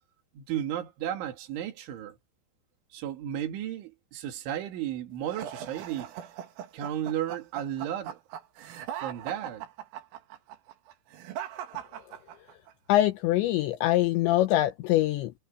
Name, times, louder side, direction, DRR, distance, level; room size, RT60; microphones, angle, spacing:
voice 1, 0.3-2.2 2.9-6.1 6.7-8.2 9.0-9.7, right 11 dB, 70° right, 4.8 m, -34 dB
sound 1, 5.3-12.7, right 10 dB, 85° right, 4.8 m, -40 dB
voice 2, 12.9-15.3, left 15 dB, 75° left, 2.9 m, -24 dB
omnidirectional pair, 5.7 m